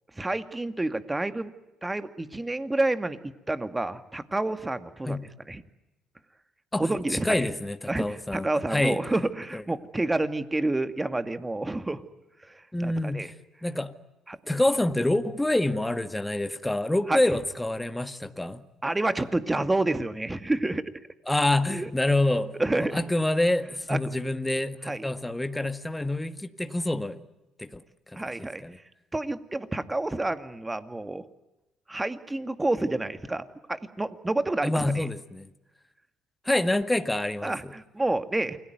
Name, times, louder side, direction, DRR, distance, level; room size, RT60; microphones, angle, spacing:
voice 1, 0.2-1.5 1.8-5.2 5.5-5.6 6.8-7.5 7.9-12.0 12.5-13.3 14.3-14.4 17.1-17.2 18.8-20.9 21.7-21.9 22.6-23.0 23.9-24.0 24.9-25.1 28.2-28.6 29.1-31.2 31.9-35.1 37.4-38.6, right 2 dB, 15° right, 2.2 m, -29 dB
voice 2, 6.7-9.0 9.5-9.6 12.7-13.3 13.6-14.0 14.5-18.6 21.3-27.2 27.6-27.8 28.4-28.8 34.6-35.5 36.5-37.7, left 1 dB, 10° left, 1.9 m, -27 dB
29.0 x 21.5 x 9.4 m
hypercardioid pair, 65°, 0 cm